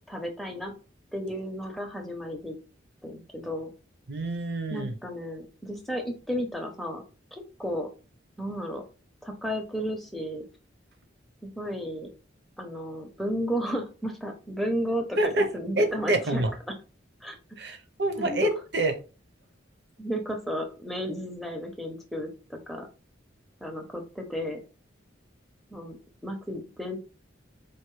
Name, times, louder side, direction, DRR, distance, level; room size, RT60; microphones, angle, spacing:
voice 1, 0.1-0.7 1.1-2.6 3.0-3.7 4.7-7.0 7.3-7.9 8.4-8.8 9.2-10.4 11.4-12.1 12.6-16.7 17.2-17.4 18.2-18.5 20.0-22.9 23.6-24.6 25.7-26.0 26.2-27.0, equal, ahead, 3 dB, 0.6 m, -33 dB
voice 2, 4.1-4.9 15.2-15.5 15.8-16.5 17.6-18.9, right 1 dB, 60° right, 6 dB, 0.7 m, -26 dB
4.5 x 2.6 x 3.1 m, 0.33 s
head